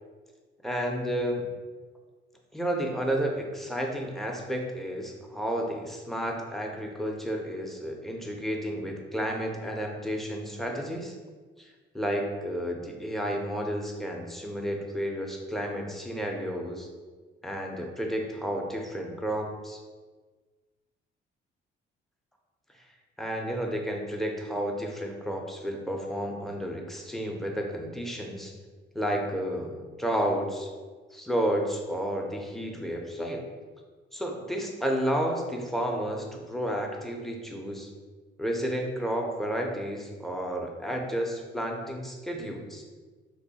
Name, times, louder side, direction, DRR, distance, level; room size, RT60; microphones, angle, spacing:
voice 1, 0.6-1.5 2.5-11.1 11.9-16.9 17.4-19.8 23.2-28.5 28.9-30.7 31.1-33.4 34.1-37.9 38.4-42.8, equal, ahead, 1 dB, 0.6 m, -31 dB
3.0 x 2.6 x 4.1 m, 1.4 s
cardioid pair, 90°, 20 cm